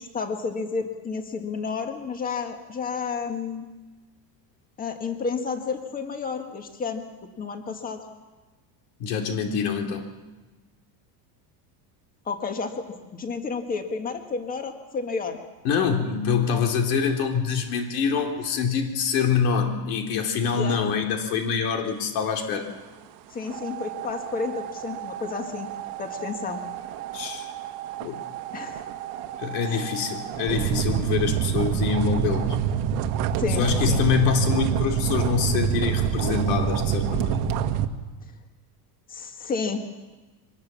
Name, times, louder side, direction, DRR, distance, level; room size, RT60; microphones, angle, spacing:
voice 1, 0.0-3.7 4.8-7.1 7.4-8.0 12.3-12.9 13.1-15.4 20.5-20.8 23.3-25.7 26.0-26.6 28.5-28.8 29.7-29.9 33.4-34.0 39.1-39.8, left 5 dB, 20° left, 6 dB, 1.7 m, -31 dB
voice 2, 9.0-10.1 15.6-22.7 27.1-27.5 28.0-28.2 29.4-32.6 33.5-37.4, left 7 dB, 70° left, 4 dB, 3.1 m, -25 dB
sound 1, 23.5-37.9, right 9 dB, 85° right, 1.8 m, -27 dB
24.0 x 20.0 x 7.4 m, 1.2 s
cardioid pair, 175°, 47 cm